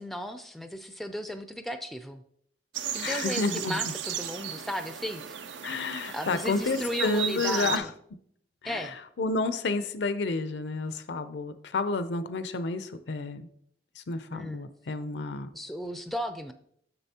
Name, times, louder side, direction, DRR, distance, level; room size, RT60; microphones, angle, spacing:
voice 1, 0.0-2.2 2.9-5.4 6.1-7.9 8.6-9.0 14.3-14.7 15.5-16.5, equal, ahead, 8 dB, 0.3 m, -35 dB
sound 1, 2.7-7.8, right 9 dB, 90° right, 0.5 m, -35 dB
voice 2, 3.0-3.9 5.6-7.9 9.2-13.4 14.1-15.5, left 3 dB, 70° left, 12 dB, 0.5 m, -30 dB
6.8 x 6.7 x 2.8 m, 0.66 s
head